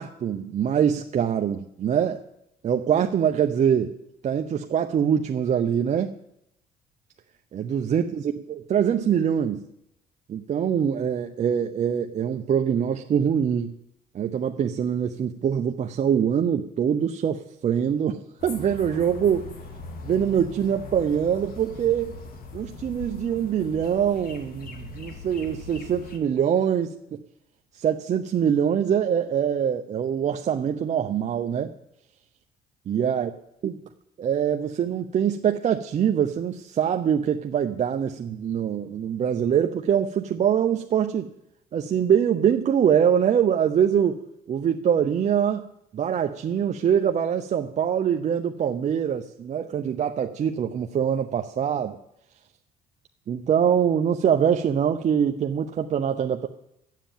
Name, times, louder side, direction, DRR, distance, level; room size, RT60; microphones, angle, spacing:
voice 1, 0.0-2.2 2.6-3.9 4.2-6.1 7.5-9.6 10.3-13.7 14.1-19.5 20.0-22.1 22.5-26.9 27.7-31.7 32.9-33.3 33.6-33.7 34.2-41.3 41.7-44.2 44.5-45.6 45.9-52.0 53.3-56.5, right 8 dB, 45° right, 5 dB, 0.7 m, -24 dB
sound 1, 18.4-26.2, left 3 dB, 60° left, 2.0 m, -41 dB
11.5 x 7.5 x 9.1 m, 0.80 s
cardioid pair, 110°, 17 cm